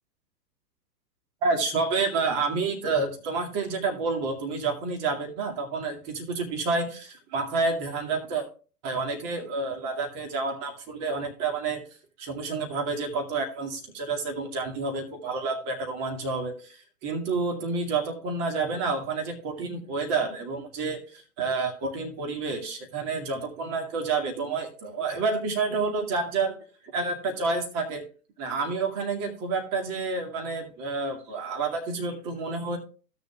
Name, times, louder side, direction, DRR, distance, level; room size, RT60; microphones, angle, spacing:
voice 1, 1.4-8.5 8.8-11.8 12.2-26.6 26.9-28.0 28.4-32.8, right 4 dB, 35° right, 3 dB, 2.4 m, -29 dB
16.5 x 6.7 x 2.4 m, 0.38 s
hypercardioid pair, 120°, 48 cm